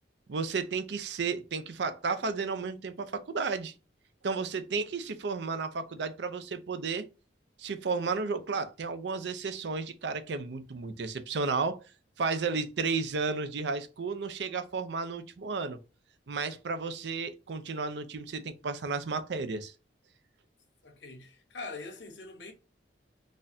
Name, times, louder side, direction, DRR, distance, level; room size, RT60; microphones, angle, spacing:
voice 1, 0.3-3.7 4.2-7.1 7.6-11.8 12.2-15.8 16.3-19.7, right 4 dB, 70° right, 0.5 m, -33 dB
voice 2, 20.8-22.5, left 3 dB, 80° left, 1.1 m, -43 dB
4.0 x 2.5 x 2.6 m
head